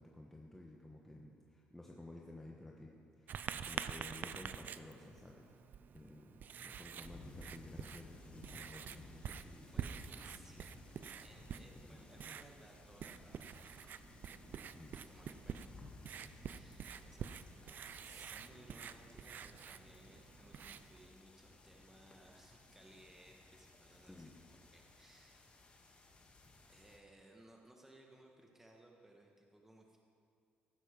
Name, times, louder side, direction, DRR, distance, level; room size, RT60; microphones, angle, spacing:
voice 1, 0.0-5.5 5.9-10.0 11.3-12.0 14.7-15.0 24.1-24.3, left 2 dB, 10° left, -1 dB, 1.2 m, -54 dB
Writing, 3.3-21.1, right 8 dB, 55° right, 0.5 m, -48 dB
sound 1, 7.0-27.0, left 2 dB, 35° left, 1.9 m, -59 dB
voice 2, 9.7-10.7 11.2-13.7 14.9-17.3 17.6-17.8 18.0-25.5 26.7-30.0, right 1 dB, 10° right, 0 dB, 1.5 m, -62 dB
15.5 x 11.5 x 5.3 m, 2.3 s
cardioid pair, 105°, 4 cm